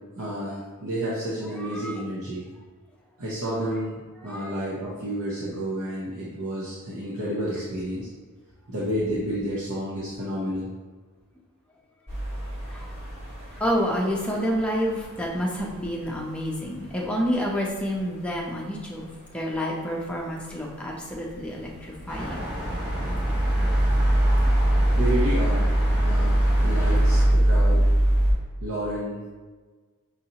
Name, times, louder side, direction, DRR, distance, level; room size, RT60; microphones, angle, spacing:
voice 1, 0.2-2.5 3.2-8.1 8.7-10.7 24.9-25.6 26.0-27.9 28.6-29.3, equal, 80° right, -7 dB, 0.8 m, -30 dB
voice 2, 1.6-1.9 4.2-4.5 12.7-12.9 13.6-19.1 19.3-22.5, equal, 5° left, -3 dB, 0.6 m, -29 dB
sound 1, 12.1-13.6 22.2-28.3, right 1 dB, 50° right, 1.4 m, -22 dB
sound 2, 22.1-27.3, equal, 20° right, 0.9 m, -33 dB
5.5 x 2.7 x 2.8 m, 1.3 s
head